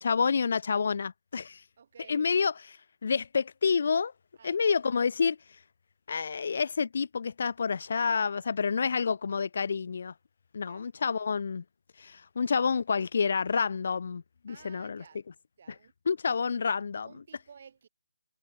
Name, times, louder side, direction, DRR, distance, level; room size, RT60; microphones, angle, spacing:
voice 1, 0.0-1.6 2.1-2.5 3.0-4.1 4.4-5.4 6.1-10.1 10.5-11.6 12.0-15.0 16.1-17.1, left 5 dB, 45° left, 0.9 m, -28 dB
voice 2, 1.8-2.3 4.4-4.7 10.6-10.8 14.5-15.2 15.6-15.9 16.3-16.6 17.0-17.9, right 6 dB, 35° right, 6.0 m, -54 dB
figure-of-eight pair, 170°, 0 cm